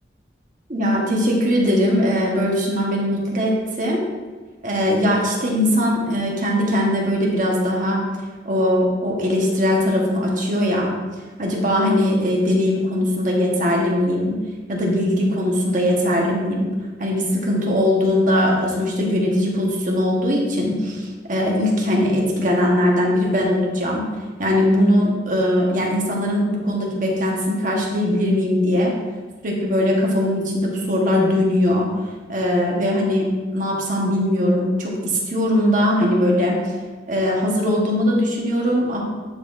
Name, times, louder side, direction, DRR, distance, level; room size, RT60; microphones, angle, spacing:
voice 1, 0.7-4.0 4.6-8.1 8.4-10.9 11.4-14.3 14.7-16.7 17.0-24.0 24.4-28.9 29.4-31.9 32.3-36.6 37.1-39.0, left 1 dB, 45° right, -2 dB, 1.2 m, -20 dB
10.0 x 4.2 x 2.6 m, 1.4 s
head